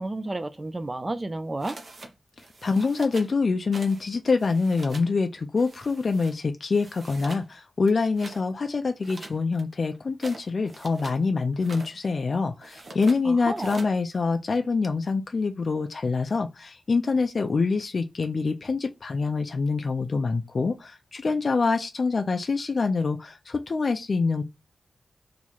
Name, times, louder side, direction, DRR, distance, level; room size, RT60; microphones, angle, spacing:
voice 1, 0.0-1.8 13.2-13.8, right 2 dB, 25° right, 0.4 m, -31 dB
sound 1, 1.6-2.1 2.4-3.3 3.7-4.1 4.3-5.1 5.6-6.3 6.7-7.5 7.8-8.4 9.0-11.2 11.5-11.9 12.6-13.2 13.6-13.9, right 2 dB, 55° right, 0.7 m, -43 dB
voice 2, 2.6-24.4, left 4 dB, 55° left, 0.3 m, -25 dB
3.0 x 2.3 x 4.2 m
wide cardioid pair, 105°, 0 cm